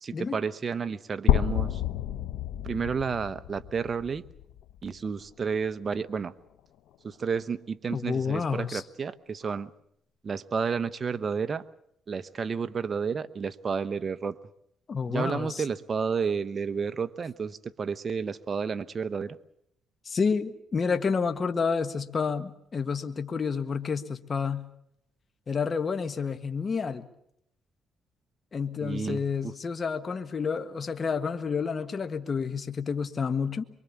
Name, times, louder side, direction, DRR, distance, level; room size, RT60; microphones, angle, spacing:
voice 1, 0.0-1.8 2.6-4.2 4.8-6.3 7.0-9.7 10.2-11.6 12.1-14.4 15.1-19.4 28.8-29.5, right 5 dB, 40° right, 12 dB, 1.0 m, -31 dB
sound 1, 1.3-5.2, left 11 dB, 85° left, 1.1 m, -29 dB
voice 2, 7.9-8.8 14.9-15.6 20.0-24.7 25.5-27.1 28.5-33.6, left 5 dB, 40° left, 8 dB, 1.5 m, -29 dB
24.0 x 23.5 x 7.2 m, 0.74 s
cardioid pair, 90°, 0 cm